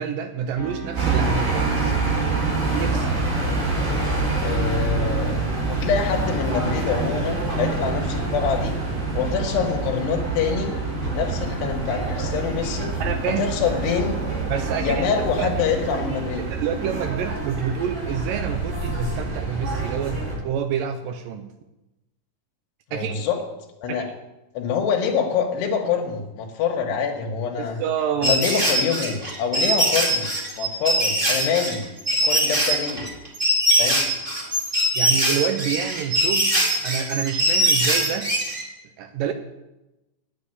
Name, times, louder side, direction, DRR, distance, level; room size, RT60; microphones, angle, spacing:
voice 1, 0.0-2.0 2.7-3.2 13.0-13.5 14.5-15.0 15.4-15.5 16.4-21.5 22.9-23.3 23.9-24.0 27.8-28.4 35.0-36.5 36.8-38.3 39.0-39.3, right 8 dB, 80° right, 8 dB, 2.0 m, -28 dB
sound 1, 0.6-20.4, right 1 dB, 60° left, 0.8 m, -36 dB
sound 2, 1.0-20.3, right 3 dB, 50° right, 6.5 m, -26 dB
voice 2, 4.4-8.8 9.1-10.7 11.1-12.9 13.3-14.2 14.8-16.5 22.9-23.4 23.8-24.1 24.5-27.8 28.2-30.3 30.6-31.8 32.2-33.0 33.8-34.1, left 6 dB, 85° left, 1 dB, 3.4 m, -25 dB
sound 3, 28.2-38.6, right 1 dB, 20° right, 1.8 m, -21 dB
9.8 x 8.4 x 9.3 m, 0.98 s
omnidirectional pair, 4.7 m